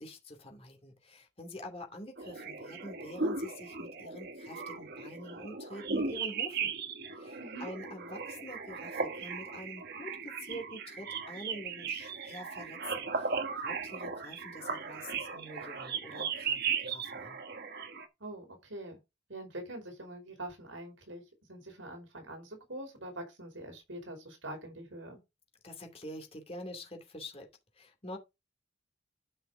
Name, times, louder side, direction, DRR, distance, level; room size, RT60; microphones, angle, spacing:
voice 1, 0.0-6.7 7.1-17.4 25.6-27.5 27.7-28.2, left 1 dB, 30° left, 2.6 m, -46 dB
sound 1, 2.2-18.1, right 5 dB, 55° right, 1.5 m, -37 dB
voice 2, 7.4-7.7 18.2-19.0 19.3-21.2 21.5-25.2, right 1 dB, 80° right, 5.1 m, -44 dB
12.5 x 5.9 x 3.8 m
head